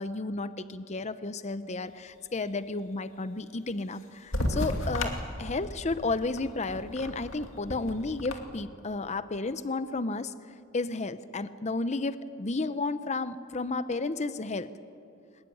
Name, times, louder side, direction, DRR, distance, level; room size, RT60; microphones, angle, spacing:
voice 1, 0.0-5.1 5.4-10.3 10.7-14.7, left 3 dB, 30° left, 13 dB, 0.7 m, -32 dB
sound 1, 4.3-8.4, left 1 dB, 65° left, 2.5 m, -34 dB
22.5 x 20.5 x 9.8 m, 2.5 s
head